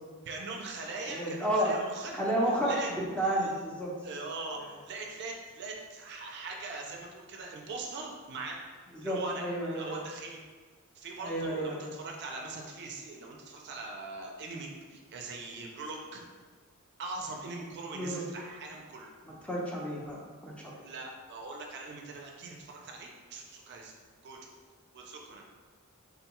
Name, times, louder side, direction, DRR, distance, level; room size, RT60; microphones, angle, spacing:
voice 1, 0.2-2.1 2.6-2.9 3.2-3.6 4.0-8.6 9.0-10.4 10.9-16.4 17.0-19.1 20.8-23.9 24.2-24.5 24.9-25.4, right 3 dB, 50° right, 0 dB, 0.4 m, -41 dB
voice 2, 1.0-1.7 2.1-3.9 8.9-10.0 11.2-11.9 17.9-18.2 19.2-20.2 20.4-20.7, right 1 dB, 5° left, -5 dB, 0.5 m, -31 dB
3.6 x 2.3 x 2.9 m, 1.5 s
head